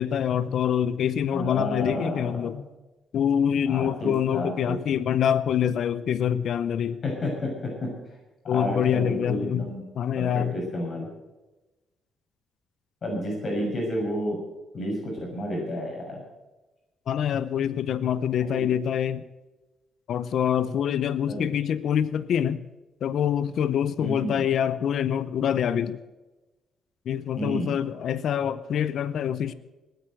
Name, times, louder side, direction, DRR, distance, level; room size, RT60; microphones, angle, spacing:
voice 1, 0.0-2.6 3.1-7.0 8.5-9.7 10.0-10.6 17.1-19.2 20.1-22.6 23.0-26.0 27.1-29.5, left 9 dB, 65° left, 15 dB, 0.7 m, -25 dB
voice 2, 1.3-2.6 3.7-4.8 7.0-8.2 8.4-9.8 10.1-11.1 13.0-14.4 14.7-16.2 18.4-18.7 21.2-21.4 24.0-24.4 27.4-27.8, equal, 45° left, 0 dB, 6.5 m, -31 dB
19.0 x 9.0 x 7.8 m, 1.1 s
cardioid pair, 90°, 0 cm